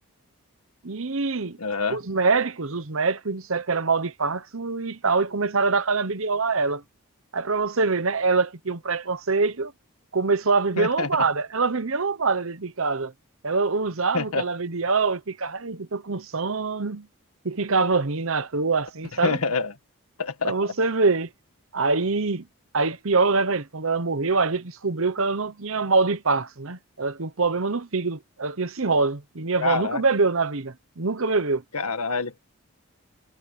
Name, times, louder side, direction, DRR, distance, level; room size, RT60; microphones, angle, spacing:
voice 1, 0.8-1.6 1.9-6.8 7.3-9.7 10.1-13.1 13.4-17.1 17.4-19.4 20.4-21.3 21.7-22.5 22.7-31.6, right 4 dB, 65° right, 1.0 m, -24 dB
voice 2, 1.6-2.0 10.8-11.1 14.1-14.4 19.2-19.7 20.2-20.6 29.6-30.0 31.7-32.4, left 4 dB, 90° left, 1.9 m, -26 dB
head